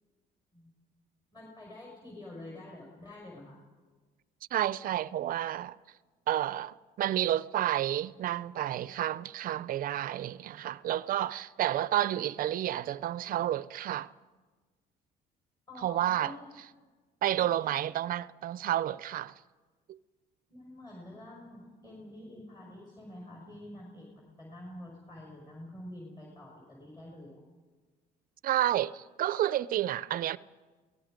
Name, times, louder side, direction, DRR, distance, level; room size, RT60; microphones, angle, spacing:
voice 1, 1.3-3.6 15.7-16.6 17.3-17.8 20.5-27.4, left 1 dB, 25° left, 5.6 m, -47 dB
voice 2, 4.5-5.8 6.3-14.1 15.8-16.3 17.2-19.3 19.9-20.0 28.4-30.4, right 12 dB, 55° right, 0.5 m, -30 dB
29.5 x 18.5 x 5.2 m
cardioid pair, 110°, 17 cm